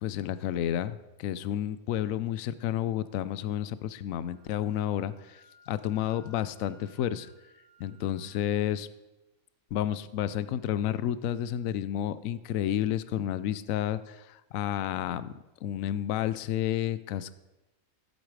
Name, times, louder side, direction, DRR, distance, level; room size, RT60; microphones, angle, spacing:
voice 1, 0.0-5.4 5.7-7.3 7.8-8.9 9.7-15.3 15.6-17.3, left 11 dB, 80° left, 15 dB, 1.0 m, -31 dB
Wind instrument woodwind instrument, 4.3-8.4, left 1 dB, 85° right, 2.8 m, -60 dB
14.5 x 8.3 x 4.8 m, 1.0 s
omnidirectional pair, 1.4 m